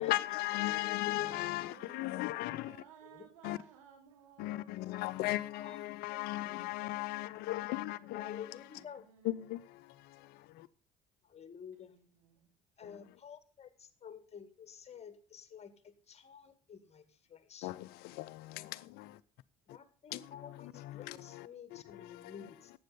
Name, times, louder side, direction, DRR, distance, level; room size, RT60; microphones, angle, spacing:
voice 1, 0.0-2.8 3.4-3.6 4.4-8.5 9.2-10.7 12.9-13.0 17.6-19.2 20.1-22.5, left 17 dB, 70° left, 0.7 m, -37 dB
voice 2, 0.8-2.2 3.1-3.3 4.5-4.7 5.0-5.2 5.6-5.8 8.1-9.0 11.2-11.9 12.8-17.7 19.7-22.7, left 7 dB, 40° left, 1.9 m, -51 dB
voice 3, 1.6-4.7 8.7-9.4 11.7-12.5, right 8 dB, 90° right, 3.1 m, -59 dB
12.0 x 8.7 x 5.4 m
hypercardioid pair, 65°, 17 cm